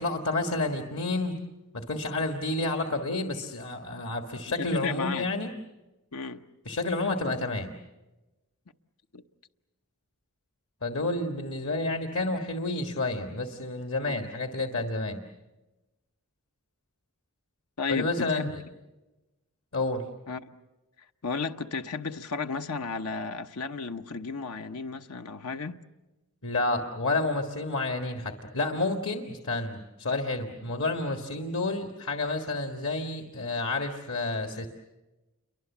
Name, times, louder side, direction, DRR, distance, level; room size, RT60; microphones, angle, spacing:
voice 1, 0.0-1.4 1.7-5.5 6.6-7.7 10.8-15.2 17.9-18.6 19.7-20.1 26.4-34.7, left 2 dB, 65° left, 1.7 m, -30 dB
voice 2, 4.5-5.3 6.1-6.4 9.1-9.2 14.1-14.2 17.8-18.5 20.3-20.4 21.2-25.8, left 4 dB, 85° left, 1.0 m, -33 dB
29.5 x 23.5 x 7.3 m
head